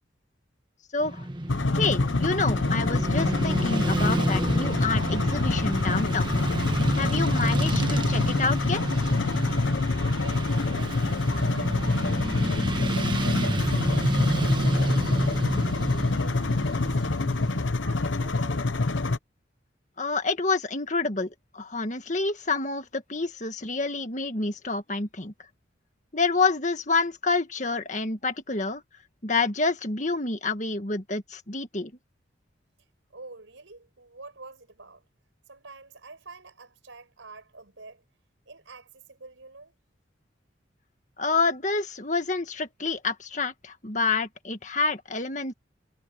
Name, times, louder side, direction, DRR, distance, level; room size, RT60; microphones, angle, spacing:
voice 1, 0.9-1.3 1.8-6.3 6.9-8.8 20.0-25.3 26.1-28.8 29.2-31.9 41.2-45.5, left 3 dB, 40° left, 1.8 m, -28 dB
Motorcycle / Traffic noise roadway noise, 1.0-17.7, right 1 dB, 25° right, 1.5 m, -29 dB
sound 1, 1.5-19.2, left 3 dB, 80° left, 0.9 m, -26 dB
voice 2, 10.0-12.6 13.1-17.2 17.8-18.7 33.1-35.0 35.5-38.0 38.5-39.7, right 3 dB, 85° right, 5.2 m, -47 dB
head